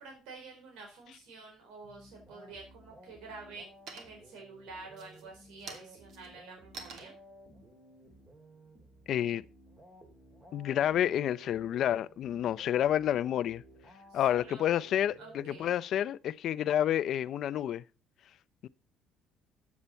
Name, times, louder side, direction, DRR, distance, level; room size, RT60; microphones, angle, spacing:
voice 1, 0.0-7.1 14.1-14.6 15.2-15.7, right 3 dB, 90° right, 4.6 m, -49 dB
sound 1, 1.8-16.1, right 1 dB, 20° right, 2.5 m, -56 dB
sound 2, 3.9-4.4 4.9-9.3, right 4 dB, 50° right, 2.5 m, -50 dB
voice 2, 9.1-9.4 10.5-13.6 14.1-17.8 18.6-18.7, left 11 dB, 50° left, 0.5 m, -29 dB
14.5 x 8.4 x 4.4 m
cardioid pair, 165°, 0 cm